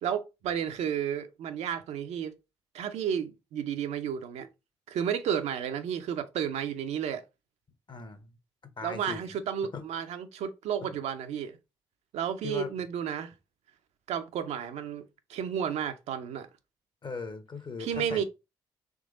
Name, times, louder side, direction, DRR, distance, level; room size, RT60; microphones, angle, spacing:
voice 1, 0.0-2.3 2.7-4.5 4.9-7.2 8.8-11.6 12.1-13.3 14.1-15.0 15.3-16.5 17.8-18.2, right 8 dB, 70° right, 0.6 m, -32 dB
voice 2, 7.9-8.4 8.6-9.2 9.7-9.8 12.4-12.7 17.0-18.2, left 4 dB, 45° left, 1.0 m, -39 dB
3.7 x 3.1 x 3.7 m
hypercardioid pair, 45°, 12 cm